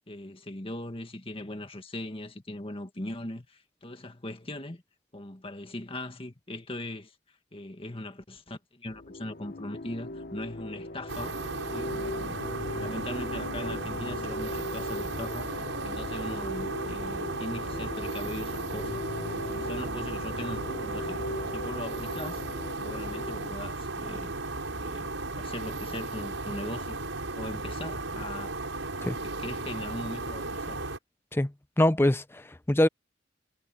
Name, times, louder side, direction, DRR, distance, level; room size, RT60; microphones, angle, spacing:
voice 1, 0.1-4.8 5.1-7.2 7.5-19.1 19.4-21.2 21.5-22.4 22.8-24.4 24.8-28.6 29.0-30.8, left 1 dB, 30° left, 1.9 m, -40 dB
sound 1, 8.9-23.5, left 1 dB, 50° left, 1.0 m, -38 dB
sound 2, 11.1-31.0, right 3 dB, 85° right, 5.8 m, -35 dB
voice 2, 31.8-32.9, left 1 dB, 10° left, 0.6 m, -24 dB
head